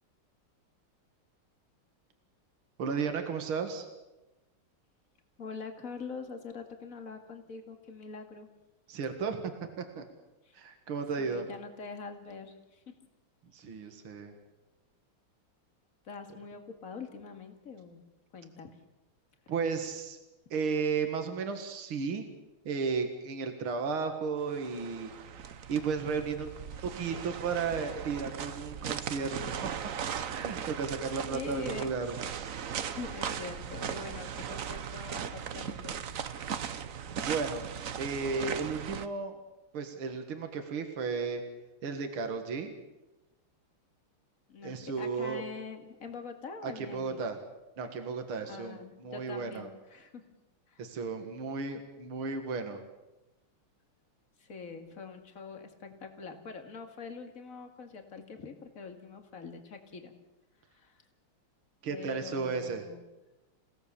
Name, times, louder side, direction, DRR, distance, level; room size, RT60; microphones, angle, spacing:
voice 1, 2.8-3.9 8.9-10.1 10.5-11.4 13.5-14.4 19.5-20.2 20.5-22.3 22.7-25.1 25.7-26.5 26.8-29.7 30.3-32.2 37.1-37.6 38.0-39.4 39.7-41.4 41.8-42.7 44.6-45.4 46.6-47.4 47.8-49.7 50.8-52.8 61.8-62.8, right 5 dB, 75° right, 6 dB, 2.7 m, -34 dB
voice 2, 5.4-8.5 10.4-10.6 11.2-13.0 16.0-18.0 18.3-18.8 31.3-31.9 32.8-36.0 44.5-47.3 48.4-50.2 50.7-50.8 54.4-60.1 60.7-61.0 61.9-63.0, left 5 dB, 40° left, 5 dB, 2.5 m, -44 dB
sound 1, 24.5-39.1, right 7 dB, 55° right, 1.0 m, -38 dB
29.5 x 17.0 x 7.0 m, 1.0 s
omnidirectional pair, 2.4 m